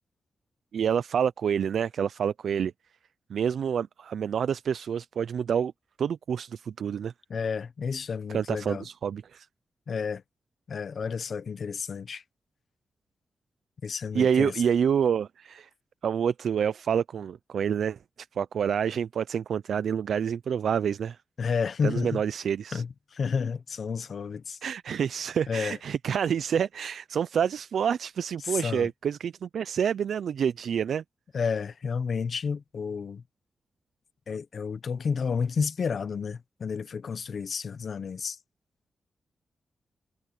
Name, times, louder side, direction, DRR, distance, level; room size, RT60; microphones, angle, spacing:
voice 1, 0.7-2.7 3.3-5.7 6.0-7.1 8.3-9.5 14.1-15.7 16.0-21.2 21.8-22.8 24.6-31.0, right 8 dB, 80° right, 0.4 m, -28 dB
voice 2, 7.3-8.9 9.9-10.2 10.7-12.2 13.8-14.6 21.4-22.2 22.7-24.6 25.5-25.8 28.4-28.9 31.3-33.2 34.3-38.4, left 5 dB, 55° left, 0.8 m, -31 dB
wide cardioid pair, 155°, 0 cm